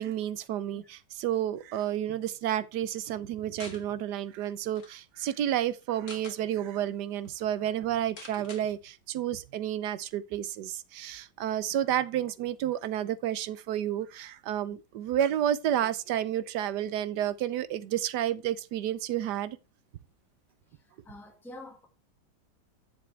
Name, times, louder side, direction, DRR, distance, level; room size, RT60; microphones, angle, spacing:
voice 1, 0.0-19.6, right 11 dB, 70° right, 1.2 m, -31 dB
sound 1, 3.6-3.8 4.3-4.4 4.6-4.9 5.8-6.4 6.9-7.0 7.2-7.4 8.2-8.6, left 4 dB, 45° left, 1.8 m, -46 dB
voice 2, 21.0-21.9, left 2 dB, ahead, 1.4 m, -46 dB
10.5 x 7.7 x 3.3 m
omnidirectional pair, 2.0 m